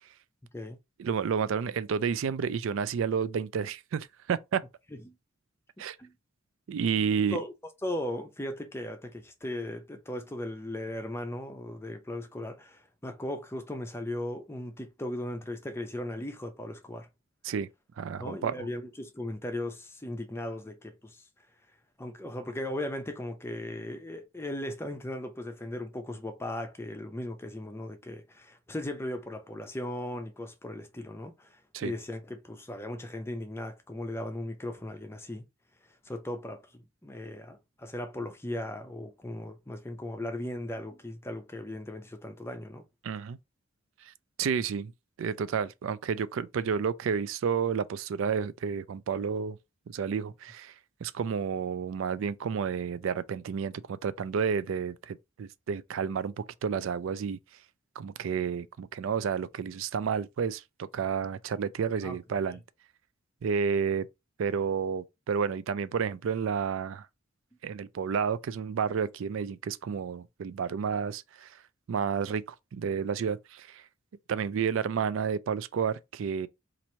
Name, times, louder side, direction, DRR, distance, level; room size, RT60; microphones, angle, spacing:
voice 1, 1.0-4.6 5.8-6.0 6.7-7.4 17.4-17.7 18.0-18.7 31.7-31.9 43.0-43.4 44.1-44.2 44.4-44.9 45.2-49.6 49.9-50.7 51.0-57.4 58.0-62.6 63.4-64.1 64.4-67.1 67.6-71.6 71.9-72.4 72.7-73.8 74.3-76.5, right 6 dB, 65° right, 0.3 m, -30 dB
voice 2, 7.8-17.1 18.2-21.3 22.0-35.4 36.0-42.8 62.0-62.2, left 1 dB, 10° left, 0.5 m, -37 dB
3.0 x 2.6 x 4.3 m
head